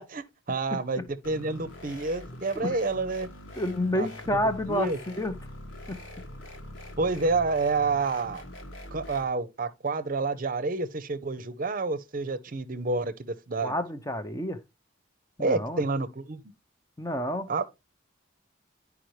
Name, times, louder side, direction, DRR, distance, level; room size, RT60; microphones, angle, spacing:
voice 1, 0.1-3.3 3.9-4.1 4.7-5.0 7.0-8.4 8.9-13.8 15.4-16.4 17.5-17.7, right 3 dB, 45° right, 0.6 m, -29 dB
sound 1, 1.2-9.2, left 1 dB, 70° left, 1.4 m, -43 dB
voice 2, 3.6-4.9 5.2-5.3 5.9-6.0 13.6-14.6 15.4-15.8 17.0-17.5, left 1 dB, 15° left, 0.6 m, -29 dB
10.5 x 4.8 x 3.1 m
head